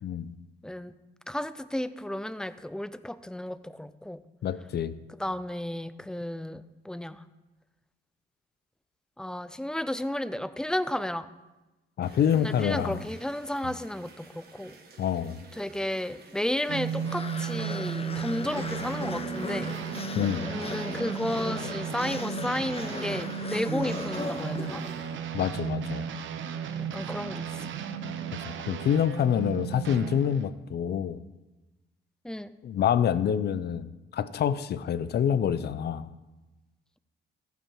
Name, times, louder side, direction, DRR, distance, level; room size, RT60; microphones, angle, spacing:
voice 1, 0.6-0.9 1.3-4.2 5.2-7.2 9.2-11.3 12.3-14.8 15.5-19.7 20.5-24.8 26.9-27.7 32.2-32.5, left 1 dB, 5° left, 14 dB, 0.5 m, -33 dB
voice 2, 4.4-4.9 12.0-13.0 15.0-15.4 20.2-20.5 25.3-26.1 28.4-31.2 32.6-33.9 34.1-36.1, left 9 dB, 55° left, 15 dB, 0.6 m, -27 dB
sound 1, 12.0-20.0, right 4 dB, 50° right, 1.8 m, -53 dB
sound 2, 16.7-30.5, right 8 dB, 75° right, 0.9 m, -35 dB
sound 3, 16.9-25.4, left 4 dB, 30° left, 0.9 m, -37 dB
15.0 x 5.9 x 5.6 m, 1.1 s
cardioid pair, 90°, 20 cm